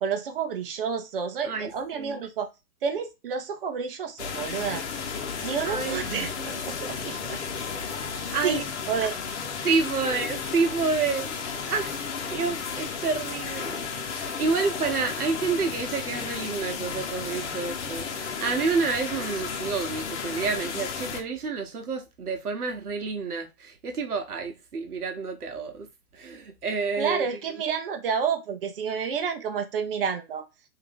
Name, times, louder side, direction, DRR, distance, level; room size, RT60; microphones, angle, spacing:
voice 1, 0.0-2.5 2.8-4.8 5.4-7.4 7.9-8.0 8.4-8.6 8.9-9.2 27.0-30.5, right 6 dB, 35° right, 0.8 m, -30 dB
voice 2, 1.4-2.2 5.7-6.5 8.3-8.6 9.6-11.4 11.7-25.9 26.1-27.3, right 4 dB, 65° right, 1.2 m, -29 dB
sound 1, 4.2-21.2, left 6 dB, 45° left, 1.1 m, -33 dB
3.7 x 2.8 x 3.6 m
figure-of-eight pair, 130°, 48 cm